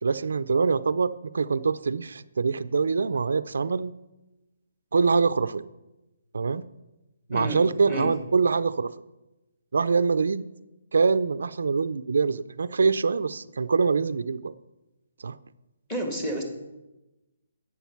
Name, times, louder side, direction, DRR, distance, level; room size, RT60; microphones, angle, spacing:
voice 1, 0.0-3.9 4.9-5.6 6.3-6.6 7.3-8.9 9.7-10.4 10.9-14.5 15.2-15.4, right 5 dB, 75° right, 13 dB, 0.4 m, -24 dB
voice 2, 7.3-7.6 7.9-8.1 15.9-16.4, equal, 10° left, 3 dB, 1.6 m, -30 dB
11.5 x 8.5 x 5.8 m, 1.0 s
hypercardioid pair, 175°, 0 cm